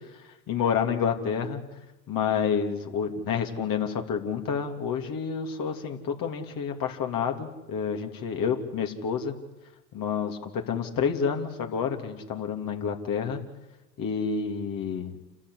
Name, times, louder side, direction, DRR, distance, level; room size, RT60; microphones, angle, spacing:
voice 1, 0.5-1.6 2.1-9.3 9.9-13.4 14.0-15.3, left 6 dB, 45° left, 4 dB, 3.0 m, -29 dB
29.0 x 13.0 x 10.0 m, 1.0 s
hypercardioid pair, 70°, 48 cm